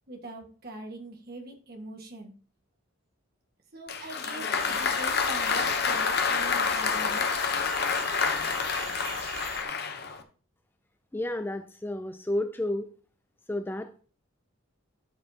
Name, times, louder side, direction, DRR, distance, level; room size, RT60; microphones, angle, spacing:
voice 1, 0.1-2.3 3.7-7.3, right 2 dB, 45° right, 2 dB, 1.7 m, -42 dB
Applause, 3.9-10.2, left 5 dB, 50° left, 0.9 m, -28 dB
sound 1, 4.6-9.6, right 8 dB, 65° right, 0.9 m, -42 dB
voice 2, 11.1-12.9 13.5-14.0, left 1 dB, 10° left, 8 dB, 0.3 m, -31 dB
12.0 x 5.4 x 2.8 m, 0.39 s
head